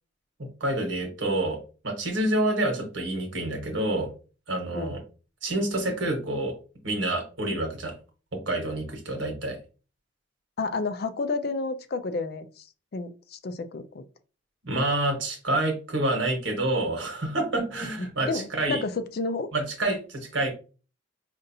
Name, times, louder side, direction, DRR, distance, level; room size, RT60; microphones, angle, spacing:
voice 1, 0.6-4.1 4.5-5.0 5.4-6.5 6.8-7.9 8.5-9.6 14.6-18.8 19.5-20.5, right 1 dB, 65° right, 1.3 m, -28 dB
voice 2, 10.6-12.7 12.9-14.0 18.3-19.5, left 3 dB, 50° left, 0.4 m, -30 dB
5.2 x 2.5 x 2.7 m
head